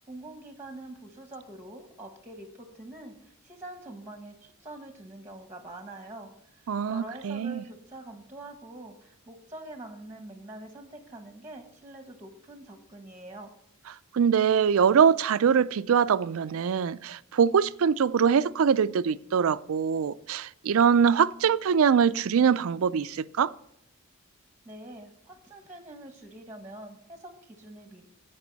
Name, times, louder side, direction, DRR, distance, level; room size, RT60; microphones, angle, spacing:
voice 1, 0.1-13.5 24.6-28.1, right 2 dB, 10° right, 1.2 m, -45 dB
voice 2, 6.7-7.6 14.1-23.5, right 7 dB, 80° right, 0.4 m, -23 dB
15.5 x 5.3 x 4.0 m
head